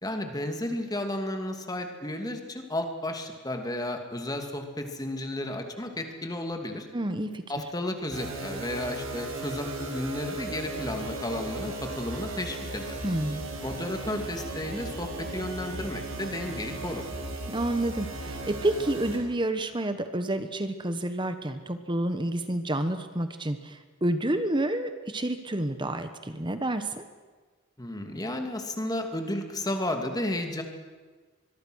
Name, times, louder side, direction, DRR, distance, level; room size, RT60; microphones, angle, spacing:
voice 1, 0.0-6.9 7.5-13.0 13.6-17.1 27.8-30.6, left 1 dB, 20° left, 5 dB, 2.6 m, -33 dB
voice 2, 6.9-7.4 13.0-13.4 17.5-27.0, right 1 dB, 20° right, 9 dB, 1.2 m, -29 dB
sound 1, 8.1-19.2, right 2 dB, 85° right, 5.6 m, -36 dB
24.5 x 22.5 x 6.4 m, 1.4 s
head